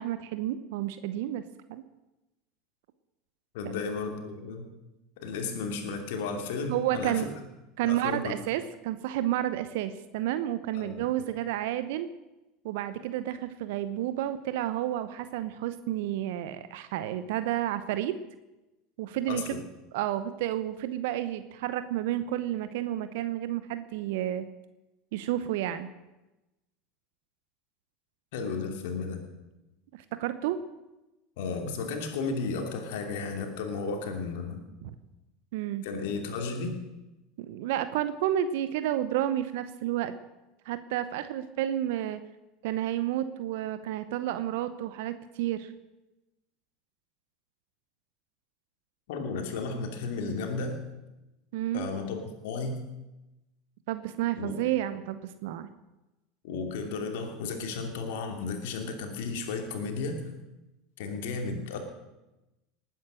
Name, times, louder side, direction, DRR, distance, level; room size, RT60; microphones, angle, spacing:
voice 1, 0.0-1.4 1.7-1.8 6.7-7.3 7.8-12.1 12.6-18.2 19.0-19.4 19.9-24.5 25.1-25.9 30.2-30.6 34.8-34.9 35.5-35.9 37.4-40.1 40.7-42.2 42.6-45.7 51.5-51.9 53.9-55.7, right 12 dB, 65° right, 12 dB, 0.8 m, -31 dB
voice 2, 3.5-4.7 5.2-7.3 7.8-8.3 10.7-11.0 19.3-19.6 28.3-29.2 31.4-34.6 35.8-36.8 49.1-50.8 51.7-52.8 54.4-54.5 56.4-60.2 61.0-61.8, left 4 dB, 65° left, 4 dB, 2.8 m, -33 dB
19.0 x 9.3 x 6.3 m, 1.0 s
hypercardioid pair, 80°, 0 cm